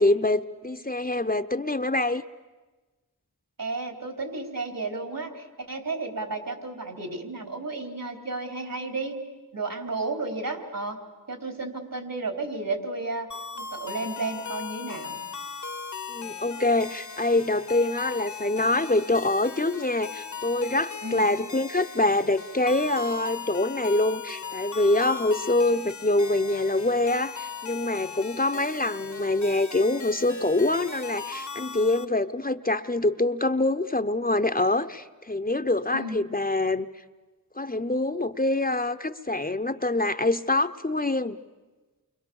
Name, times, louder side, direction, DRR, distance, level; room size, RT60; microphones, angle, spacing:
voice 1, 0.0-2.2 16.1-36.9 37.6-41.4, left 2 dB, 25° left, 8 dB, 0.8 m, -25 dB
voice 2, 3.6-9.2 9.5-11.0 11.3-13.3 13.5-15.2 21.0-21.3 35.9-36.2, right 3 dB, 70° right, 5 dB, 4.1 m, -32 dB
sound 1, 13.3-32.1, left 6 dB, 55° left, 1.1 m, -38 dB
29.0 x 24.0 x 7.2 m, 1.2 s
cardioid pair, 40°, 35 cm